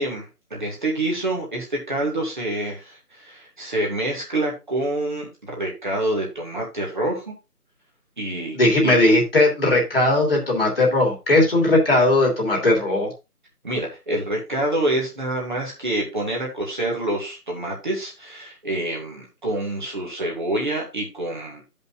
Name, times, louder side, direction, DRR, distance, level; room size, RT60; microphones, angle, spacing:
voice 1, 0.0-7.3 8.2-8.6 8.8-9.0 13.6-21.6, right 1 dB, 30° right, -2 dB, 2.1 m, -27 dB
voice 2, 8.5-13.1, left 2 dB, 40° left, -1 dB, 2.9 m, -18 dB
14.5 x 5.5 x 2.5 m, 0.25 s
figure-of-eight pair, 165°, 46 cm